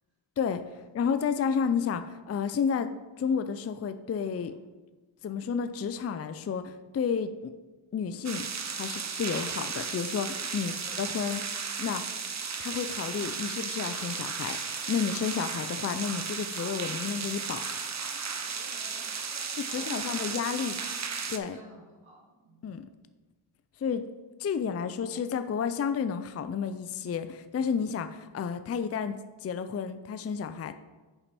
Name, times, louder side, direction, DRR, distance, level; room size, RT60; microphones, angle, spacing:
voice 1, 0.4-2.9 3.2-4.5 5.2-7.5 7.9-8.5 8.7-11.4 11.8-12.1 12.6-14.6 14.9-17.6 19.6-20.8 21.3-21.6 22.6-22.9 23.8-24.0 24.4-29.2 29.4-30.7, left 6 dB, 30° left, 10 dB, 0.4 m, -31 dB
sound 1, 8.2-21.4, right 5 dB, 35° right, 0.7 m, -35 dB
voice 2, 18.9-21.0 21.5-22.6, right 1 dB, 70° right, -3 dB, 2.4 m, -51 dB
7.1 x 5.2 x 4.2 m, 1.2 s
cardioid pair, 45°, 50 cm